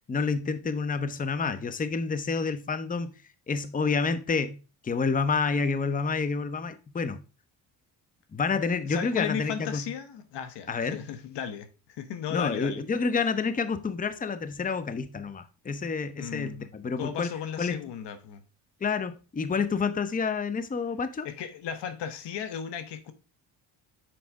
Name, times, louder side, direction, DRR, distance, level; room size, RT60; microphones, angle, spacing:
voice 1, 0.1-3.1 3.5-7.2 8.3-9.8 10.7-11.0 12.3-17.8 18.8-21.3, left 5 dB, 20° left, 0.7 m, -29 dB
voice 2, 8.9-12.8 16.2-16.7 17.0-18.4 21.2-23.1, left 8 dB, 70° left, 1.1 m, -35 dB
6.4 x 4.8 x 4.6 m
cardioid pair, 90°, 44 cm